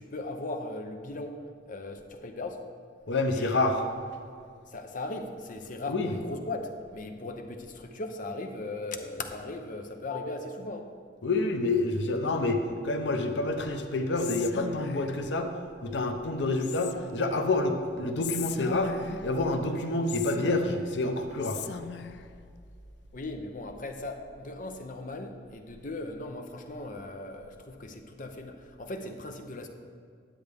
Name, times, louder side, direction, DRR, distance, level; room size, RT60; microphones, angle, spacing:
voice 1, 0.0-2.6 3.3-3.6 4.7-10.9 23.1-29.7, left 2 dB, 50° left, 6 dB, 0.7 m, -38 dB
voice 2, 3.1-3.8 5.9-6.1 11.2-15.5 15.8-18.9 19.2-21.6, left 2 dB, 90° left, 5 dB, 0.8 m, -28 dB
Whispering, 14.1-15.2 16.6-17.3 18.2-19.4 20.1-21.0 21.4-22.3, left 8 dB, 70° left, 0.4 m, -39 dB
10.0 x 7.8 x 3.5 m, 2.2 s
head